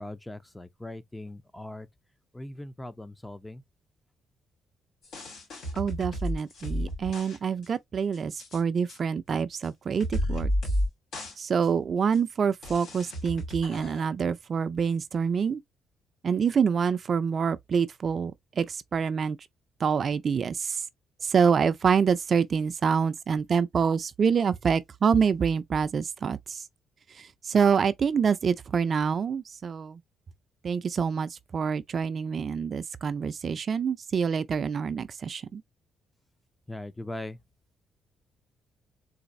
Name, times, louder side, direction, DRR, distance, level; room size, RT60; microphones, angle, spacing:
voice 1, 0.0-1.9 2.3-3.6 36.7-37.4, left 1 dB, 10° left, 0.5 m, -40 dB
sound 1, 5.0-7.4 7.6-7.7 8.1-8.6 8.9-9.0 9.6-9.7 10.0-10.9 11.1-11.3 11.6-11.7 12.1-12.2 12.6-14.0, equal, 80° left, 2.5 m, -31 dB
voice 2, 5.8-10.5 11.4-15.6 16.2-19.4 19.8-20.8 21.2-26.6 27.1-30.0 30.6-35.6, right 6 dB, 50° right, 0.4 m, -26 dB
4.0 x 2.5 x 2.5 m
cardioid pair, 90°, 0 cm